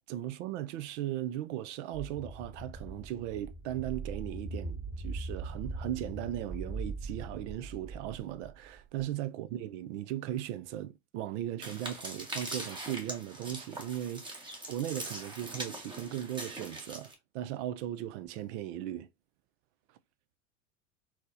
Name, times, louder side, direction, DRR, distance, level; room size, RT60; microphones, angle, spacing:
voice 1, 0.1-19.1, right 12 dB, 60° right, 0.5 m, -37 dB
sound 1, 1.9-9.0, right 3 dB, 30° right, 2.3 m, -41 dB
sound 2, 11.6-17.1, right 1 dB, 10° right, 1.0 m, -42 dB
4.2 x 2.1 x 2.5 m
hypercardioid pair, 90°, 40 cm